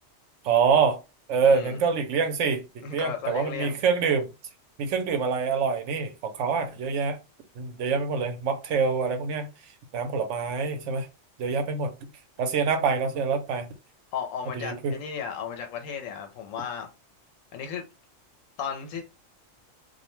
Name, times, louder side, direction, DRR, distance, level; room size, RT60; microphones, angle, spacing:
voice 1, 0.4-1.0 1.3-4.3 4.8-7.2 7.6-9.5 9.9-11.1 11.4-12.1 12.4-13.7 14.5-14.9, right 5 dB, 70° right, 0.9 m, -25 dB
voice 2, 1.4-1.8 2.8-3.7 14.1-16.9 17.5-17.9 18.6-19.0, left 7 dB, 80° left, 0.9 m, -34 dB
2.4 x 2.1 x 3.0 m
omnidirectional pair, 1.3 m